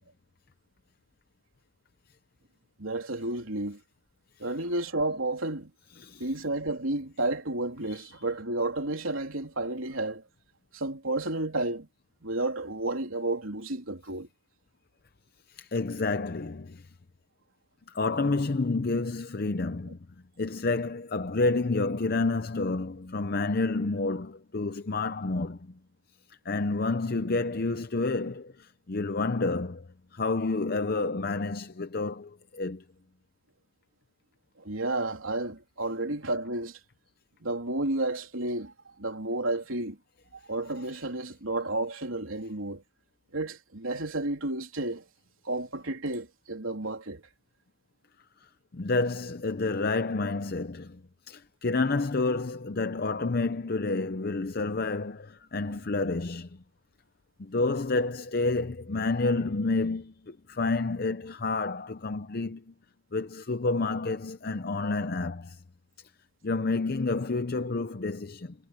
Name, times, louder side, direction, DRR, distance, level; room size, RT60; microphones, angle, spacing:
voice 1, 2.8-3.8 4.4-5.7 6.2-10.2 10.7-11.9 12.2-14.3 34.6-36.8 37.4-38.7 39.0-40.0 40.5-42.8 43.3-45.0 45.4-47.2, right 2 dB, 80° right, 3.4 m, -31 dB
voice 2, 15.5-16.9 17.9-20.0 20.4-25.7 26.3-32.8 48.7-51.0 51.3-56.6 57.4-62.7 63.1-65.6 66.4-68.5, left 3 dB, 45° left, 0.6 m, -29 dB
head